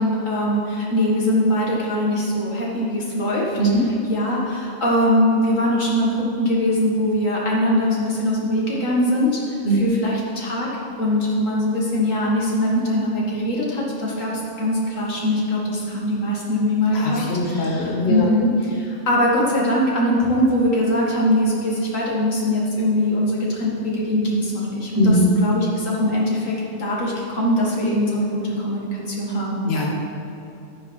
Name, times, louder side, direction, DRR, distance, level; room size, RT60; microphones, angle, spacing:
voice 1, 0.0-3.6 4.0-9.4 9.8-14.3 14.6-29.7, left 1 dB, 90° left, -5 dB, 2.4 m, -22 dB
voice 2, 9.6-10.0 16.9-18.3 25.0-25.4 29.7-29.9, equal, 55° left, -2 dB, 1.5 m, -21 dB
13.0 x 5.0 x 5.9 m, 2.9 s
omnidirectional pair, 1.3 m